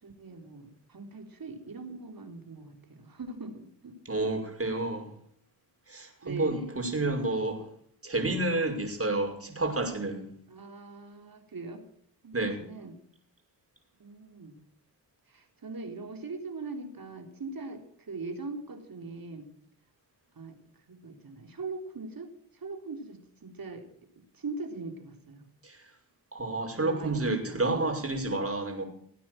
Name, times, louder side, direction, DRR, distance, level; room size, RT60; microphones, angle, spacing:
voice 1, 0.0-4.3 6.2-6.6 7.3-7.4 10.5-11.8 12.2-13.0 14.0-14.6 15.3-19.5 20.4-20.5 20.9-22.3 22.5-23.9 24.2-25.4 26.7-27.7, right 3 dB, 50° right, 5 dB, 3.7 m, -41 dB
voice 2, 4.1-5.1 5.9-7.6 8.0-10.3 12.3-12.6 25.6-25.8 26.3-28.8, right 2 dB, 30° right, 4 dB, 5.8 m, -30 dB
18.5 x 9.2 x 7.8 m, 0.63 s
supercardioid pair, 45°, 44 cm